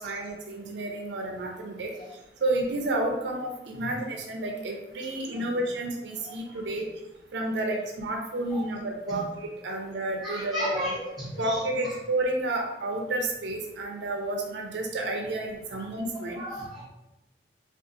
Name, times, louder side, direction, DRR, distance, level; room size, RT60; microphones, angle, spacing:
voice 1, 0.0-1.9 2.4-6.9 7.3-9.3 9.6-10.8 11.4-16.4, right 2 dB, 75° right, 1 dB, 0.4 m, -30 dB
voice 2, 6.1-6.6 8.5-8.6 9.1-9.2 10.2-12.0 15.7-15.8 16.3-16.9, equal, ahead, -9 dB, 1.4 m, -35 dB
3.6 x 2.4 x 2.6 m, 0.96 s
head